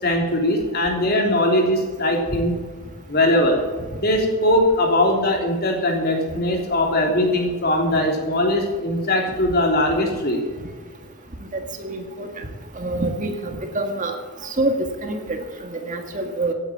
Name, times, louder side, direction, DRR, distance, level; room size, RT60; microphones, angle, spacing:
voice 1, 0.0-2.5 3.1-3.6 4.0-10.4, left 1 dB, 45° left, 2 dB, 3.4 m, -20 dB
voice 2, 11.5-12.5 12.8-14.2 14.4-16.5, right 2 dB, 35° right, 4 dB, 1.8 m, -26 dB
16.5 x 9.2 x 7.3 m, 1.5 s
head